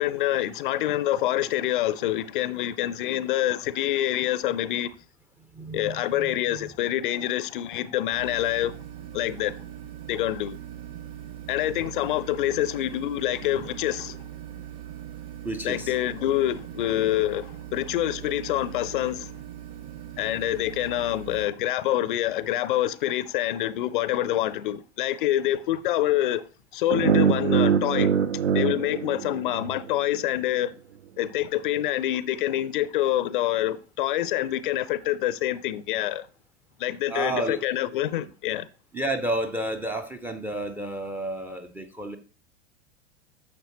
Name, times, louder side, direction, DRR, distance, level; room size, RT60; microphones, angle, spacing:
voice 1, 0.0-4.9 5.7-8.8 9.1-9.5 10.1-10.6 11.5-14.2 15.6-19.3 20.2-26.5 26.7-28.1 28.5-30.7 31.2-36.3 36.8-38.7, left 13 dB, 45° left, 0.5 m, -26 dB
voice 2, 5.4-6.7 15.4-15.9 37.1-37.7 38.9-42.2, right 1 dB, 5° right, 0.4 m, -31 dB
sound 1, 8.1-21.5, right 11 dB, 45° right, 1.8 m, -41 dB
sound 2, 26.9-30.0, right 6 dB, 70° right, 0.7 m, -23 dB
9.4 x 6.7 x 2.9 m
figure-of-eight pair, 90°, 36 cm